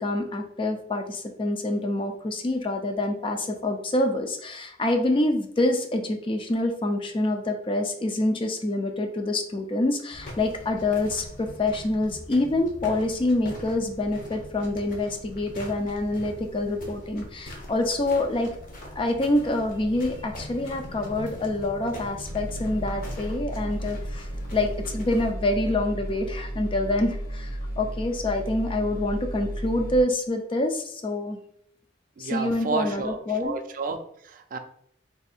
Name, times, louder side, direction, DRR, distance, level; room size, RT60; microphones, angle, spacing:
voice 1, 0.0-18.5 19.0-31.4 32.2-33.5, left 2 dB, 30° left, 5 dB, 0.4 m, -26 dB
sound 1, 10.1-25.3, left 1 dB, 50° left, 0.9 m, -41 dB
sound 2, 22.2-30.0, right 1 dB, 65° left, 1.5 m, -34 dB
voice 2, 32.2-34.0 34.3-34.6, right 3 dB, 50° right, 7 dB, 0.4 m, -31 dB
3.5 x 2.6 x 4.1 m, 0.68 s
head